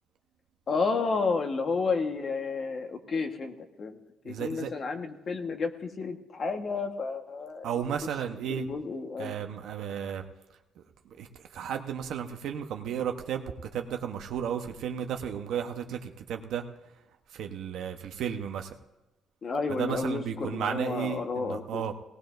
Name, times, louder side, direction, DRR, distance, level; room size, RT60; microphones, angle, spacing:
voice 1, 0.7-4.0 4.2-7.6 8.5-9.3 19.4-21.9, left 4 dB, 50° left, 5 dB, 1.4 m, -31 dB
voice 2, 4.2-4.7 7.6-8.7 9.2-10.2 10.8-16.7 17.3-18.7 19.7-21.9, right 8 dB, 80° right, 5 dB, 1.0 m, -34 dB
18.0 x 18.0 x 2.6 m, 1.0 s
cardioid pair, 90°, 0 cm